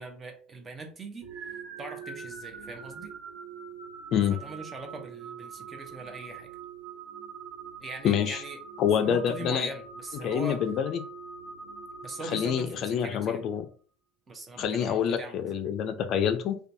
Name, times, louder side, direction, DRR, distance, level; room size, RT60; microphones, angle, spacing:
voice 1, 0.0-1.5 1.8-3.1 4.3-6.5 7.8-8.6 9.0-10.6 12.0-13.4 14.3-15.4, right 2 dB, 25° right, 4 dB, 0.6 m, -41 dB
sound 1, 1.2-13.2, right 5 dB, 65° right, 0.6 m, -44 dB
voice 2, 8.0-8.4 8.8-9.7 10.2-11.0 12.3-13.6 14.6-16.6, left 8 dB, 55° left, 8 dB, 0.3 m, -26 dB
2.5 x 2.2 x 2.5 m, 0.42 s
supercardioid pair, 115°, 0 cm